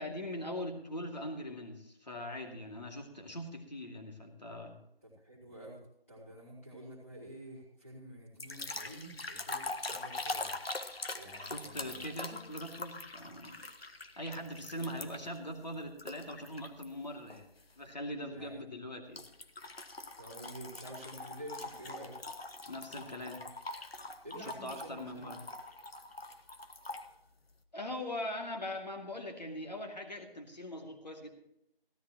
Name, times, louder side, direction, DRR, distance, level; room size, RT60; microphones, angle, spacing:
voice 1, 0.0-4.8 11.4-13.7 14.2-17.5 17.8-19.2 22.7-23.4 24.4-25.5 27.7-31.4, left 1 dB, 45° left, 2 dB, 2.3 m, -41 dB
voice 2, 5.0-5.8 6.1-10.6 11.1-12.0 14.6-15.1 18.3-18.8 20.2-22.2 24.2-25.4, right 1 dB, 15° left, -8 dB, 3.2 m, -49 dB
sound 1, 8.4-15.4 16.0-16.9 17.3-17.6 19.2-27.1, left 2 dB, 85° left, 1.5 m, -43 dB
16.0 x 14.0 x 3.0 m, 0.77 s
figure-of-eight pair, 180°, 29 cm